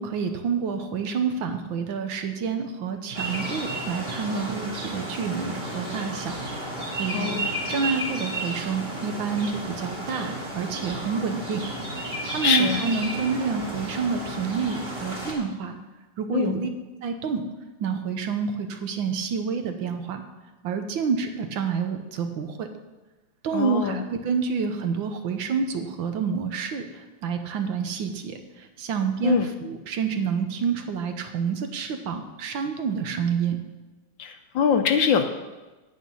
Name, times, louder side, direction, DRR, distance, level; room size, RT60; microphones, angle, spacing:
voice 1, 0.0-6.4 7.0-7.3 7.7-11.6 12.3-15.8 16.2-16.7 17.0-17.4 17.8-20.2 20.6-22.7 23.4-33.6, right 6 dB, 70° right, 6 dB, 1.5 m, -28 dB
sound 1, 3.1-15.3, right 1 dB, 20° right, 2.0 m, -33 dB
voice 2, 7.1-7.5 12.4-12.8 16.3-16.6 23.5-24.0 29.2-29.5 34.2-35.2, left 7 dB, 70° left, 7 dB, 1.2 m, -23 dB
8.9 x 8.7 x 5.5 m, 1.1 s
omnidirectional pair, 2.4 m